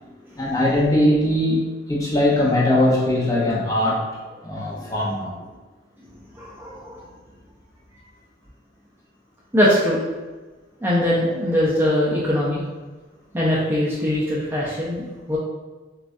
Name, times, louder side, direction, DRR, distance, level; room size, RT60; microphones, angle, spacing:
voice 1, 0.4-1.6 1.9-4.0 4.4-5.3, left 1 dB, 20° left, -5 dB, 0.8 m, -20 dB
voice 2, 6.3-7.0 9.5-10.0 10.8-12.6 13.3-15.4, left 1 dB, 10° right, -7 dB, 0.6 m, -21 dB
6.6 x 2.5 x 2.6 m, 1.3 s
head